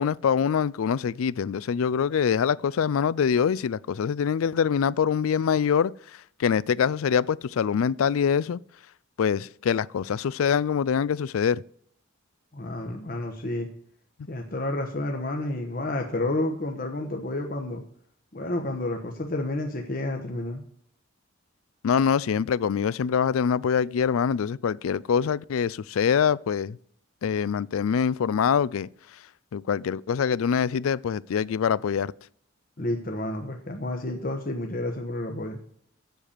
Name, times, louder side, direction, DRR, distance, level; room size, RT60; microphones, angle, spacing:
voice 1, 0.0-5.9 6.4-8.6 9.2-11.6 21.8-26.8 27.2-28.9 29.5-32.1, left 7 dB, 90° left, 0.4 m, -24 dB
voice 2, 12.5-13.7 14.3-17.8 18.3-20.6 32.8-35.6, left 1 dB, 45° left, 1.1 m, -30 dB
8.1 x 6.6 x 7.2 m
head